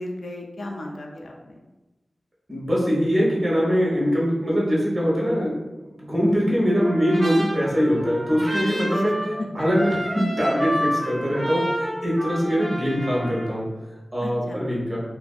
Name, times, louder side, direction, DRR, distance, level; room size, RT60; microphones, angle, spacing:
voice 1, 0.0-1.6 8.5-9.0 9.4-9.5 14.2-14.6, left 1 dB, 65° left, 0 dB, 0.3 m, -35 dB
voice 2, 2.5-5.6 5.9-9.2 9.5-13.7 14.1-15.0, equal, 40° right, -6 dB, 0.9 m, -22 dB
Trumpet, 6.8-13.5, equal, 60° right, 0.8 m, -30 dB
2.5 x 2.4 x 2.3 m, 1.1 s
wide cardioid pair, 85°, 0 cm